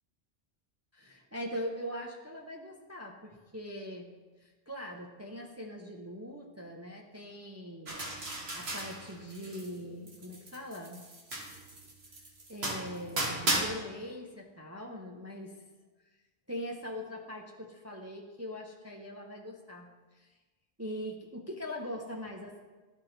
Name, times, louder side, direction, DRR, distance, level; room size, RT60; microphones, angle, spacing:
voice 1, 0.9-4.1 4.4-8.0 8.5-11.1 12.5-15.5 16.5-19.9 20.1-20.3 20.8-22.6, equal, 20° right, 0 dB, 0.6 m, -41 dB
sound 1, 7.9-9.8 10.1-13.6, right 1 dB, 70° right, 1.6 m, -35 dB
13.0 x 4.3 x 3.9 m, 1.2 s
omnidirectional pair, 1.1 m